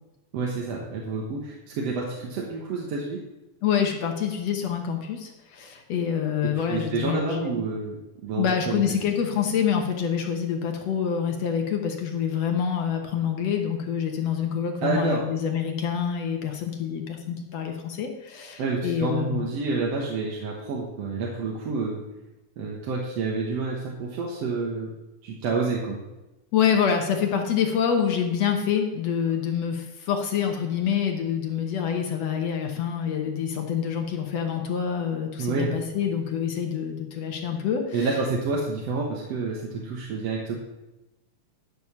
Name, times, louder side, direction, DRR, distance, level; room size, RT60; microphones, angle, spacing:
voice 1, 0.3-3.2 6.7-8.8 14.8-15.2 18.6-22.0 22.6-24.9 25.2-26.0 35.4-35.7 37.9-40.6, right 4 dB, 60° right, -2 dB, 2.1 m, -28 dB
voice 2, 3.6-7.6 8.4-19.5 26.5-38.1, left 8 dB, 65° left, 3 dB, 2.0 m, -26 dB
11.0 x 6.2 x 7.1 m, 1.0 s
omnidirectional pair, 3.5 m